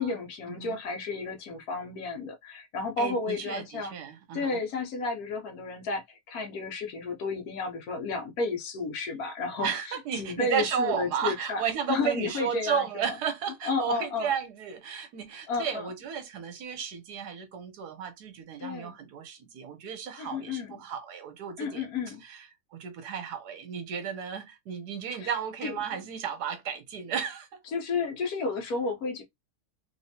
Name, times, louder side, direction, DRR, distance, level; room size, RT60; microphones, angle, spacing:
voice 1, 0.0-3.9 4.3-11.6 11.9-13.2 13.6-14.3 15.5-15.9 18.6-19.0 20.2-20.8 21.6-22.2 25.1-25.3 25.6-25.8 27.7-29.2, left 4 dB, 65° left, 1.2 m, -32 dB
voice 2, 3.0-4.6 9.6-21.8 22.2-22.5 22.7-27.5, right 7 dB, 75° right, 1.3 m, -33 dB
3.1 x 3.0 x 2.8 m
omnidirectional pair, 1.7 m